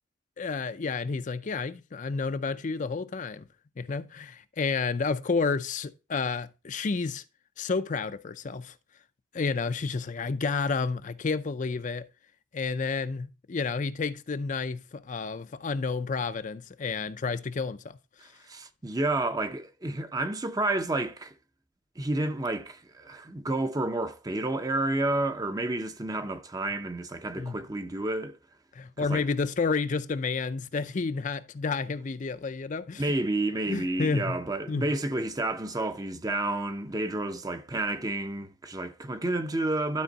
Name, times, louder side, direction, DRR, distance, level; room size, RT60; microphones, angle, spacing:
voice 1, 0.4-3.4 3.8-7.2 7.6-8.7 9.3-12.1 12.5-18.0 27.4-27.6 28.7-33.2 33.7-34.4 34.7-34.9, left 4 dB, 40° left, 0.4 m, -30 dB
voice 2, 18.2-21.3 22.0-28.4 29.0-29.2 33.0-40.0, right 2 dB, 20° right, 0.6 m, -30 dB
12.0 x 4.4 x 3.9 m
head